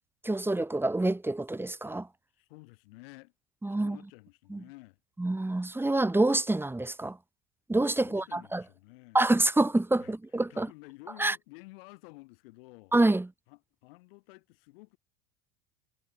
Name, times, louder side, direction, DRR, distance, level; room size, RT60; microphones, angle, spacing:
voice 1, 0.2-2.1 3.6-4.0 4.5-4.6 5.2-7.2 7.7-8.6 9.1-10.7 11.2-11.4 12.9-13.3, right 2 dB, 5° right, 1.6 m, -27 dB
voice 2, 2.3-3.3 3.7-5.0 8.0-9.2 10.0-10.2 10.5-12.9 13.5-15.0, left 24 dB, 70° left, 6.3 m, -52 dB
hypercardioid pair, 95°, 30 cm